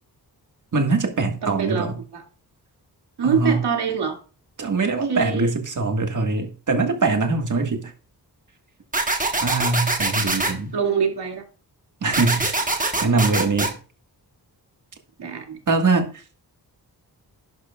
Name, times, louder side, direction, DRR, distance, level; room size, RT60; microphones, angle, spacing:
voice 1, 0.7-2.0 3.2-3.6 4.6-7.9 9.4-10.7 12.0-13.8 15.7-16.1, right 3 dB, 50° right, 1.7 m, -22 dB
voice 2, 1.4-1.9 2.1-2.2 3.2-4.2 5.1-5.5 10.7-11.4 15.2-15.6, right 7 dB, 80° right, 2.5 m, -24 dB
sound 1, 8.9-10.5 12.1-13.7, right 2 dB, 20° right, 1.2 m, -23 dB
11.5 x 11.0 x 2.4 m
wide cardioid pair, 165°, 40 cm